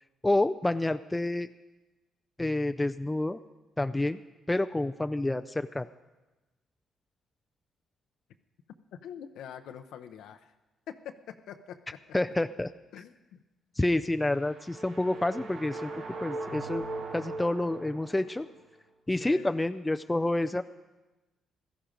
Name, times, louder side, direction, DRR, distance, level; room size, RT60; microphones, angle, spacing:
voice 1, 0.2-1.5 2.4-3.4 3.8-4.2 4.5-5.9 12.1-12.7 13.8-15.9 16.2-16.8 17.1-18.5 19.1-20.6, left 2 dB, 10° left, 10 dB, 0.4 m, -28 dB
voice 2, 8.9-10.5 10.9-12.0 12.9-13.4 19.2-19.6, left 9 dB, 80° left, 7 dB, 0.7 m, -45 dB
sound 1, 14.2-18.5, right 2 dB, 75° right, 3.1 m, -39 dB
16.5 x 13.5 x 5.1 m, 1.1 s
cardioid pair, 90°, 0 cm